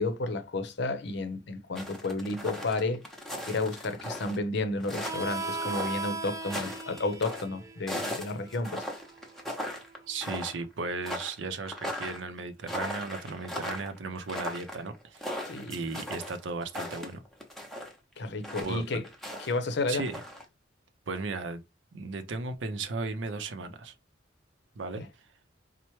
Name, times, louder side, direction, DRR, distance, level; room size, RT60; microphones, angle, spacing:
voice 1, 0.0-3.0 3.5-8.9 15.4-15.8 18.2-19.1 19.4-20.1 25.0-25.1, left 2 dB, 65° left, 0.6 m, -32 dB
sound 1, 1.8-4.4 4.8-7.4 7.9-10.0 10.2-10.7 11.0-17.9 18.4-19.5 19.9-20.4, equal, ahead, 0.7 m, -38 dB
Harmonica, 5.0-10.3, right 3 dB, 15° right, 0.4 m, -39 dB
voice 2, 10.1-15.4 15.7-17.2 18.6-19.0 19.9-20.2 21.1-21.6 21.9-23.9 24.8-25.0, right 3 dB, 80° right, 0.5 m, -36 dB
4.3 x 2.1 x 3.0 m
head